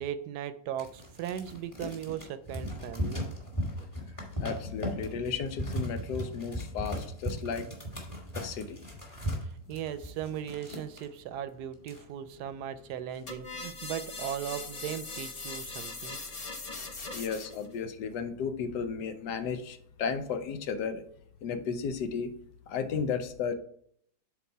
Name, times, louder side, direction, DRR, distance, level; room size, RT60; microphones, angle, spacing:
voice 1, 0.0-3.2 9.4-16.2, right 10 dB, 75° right, 12 dB, 1.1 m, -38 dB
sound 1, 0.8-11.1 11.5-11.6 11.8-12.5 12.9-13.2, equal, 20° left, 1.5 m, -37 dB
voice 2, 4.4-7.7 8.3-8.8 17.1-21.0 21.4-22.3 22.7-23.5, left 6 dB, 80° left, 10 dB, 1.3 m, -34 dB
sound 2, 13.3-17.7, left 3 dB, 40° left, 0.5 m, -40 dB
7.2 x 4.0 x 4.4 m, 0.65 s
omnidirectional pair, 1.8 m